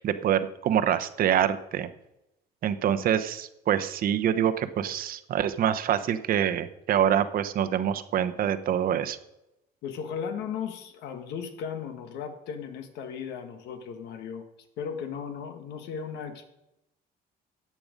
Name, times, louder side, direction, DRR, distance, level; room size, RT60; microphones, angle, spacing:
voice 1, 0.0-1.9 2.6-9.2, right 9 dB, 60° right, 10 dB, 0.9 m, -25 dB
voice 2, 9.8-14.4 14.8-16.4, left 7 dB, 85° left, 7 dB, 1.6 m, -36 dB
13.5 x 8.7 x 5.2 m, 0.89 s
cardioid pair, 110°, 17 cm